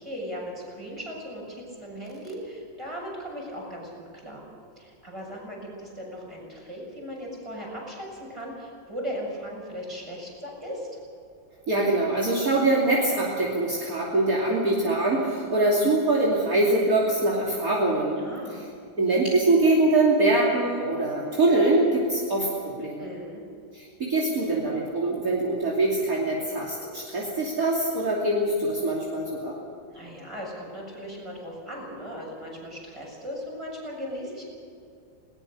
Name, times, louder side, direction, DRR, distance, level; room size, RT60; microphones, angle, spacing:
voice 1, 0.0-4.4 4.8-10.9 18.2-18.6 23.0-23.4 29.9-34.4, equal, 15° right, -2 dB, 7.2 m, -37 dB
voice 2, 11.7-18.2 19.0-23.1 23.7-29.6, right 2 dB, 50° right, -3 dB, 3.4 m, -23 dB
20.5 x 19.5 x 6.7 m, 2.4 s
omnidirectional pair, 2.0 m